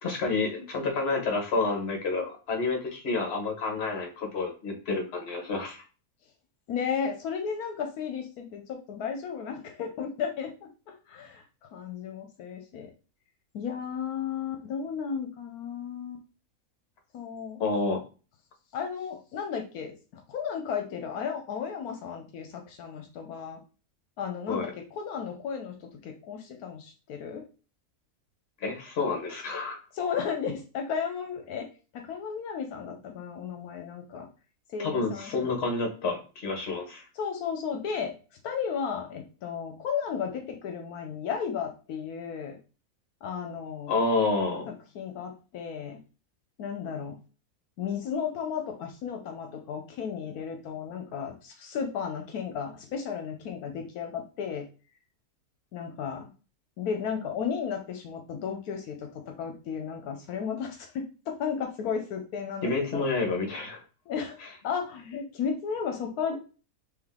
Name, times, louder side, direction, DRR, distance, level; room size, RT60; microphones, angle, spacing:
voice 1, 0.0-5.8 17.6-18.0 24.5-24.7 28.6-29.8 34.9-37.0 43.9-44.7 62.6-63.8, left 3 dB, 45° left, 3 dB, 1.2 m, -29 dB
voice 2, 6.7-11.4 11.7-12.9 13.5-16.2 17.1-17.6 18.7-23.6 24.2-27.4 29.9-31.7 31.9-34.3 34.7-35.5 37.1-38.1 38.4-42.6 43.2-43.9 44.9-46.0 46.6-47.2 47.8-54.7 55.7-56.3 56.8-63.0 64.1-66.4, left 7 dB, 80° left, 4 dB, 1.1 m, -34 dB
3.6 x 2.9 x 3.6 m, 0.35 s
omnidirectional pair, 1.6 m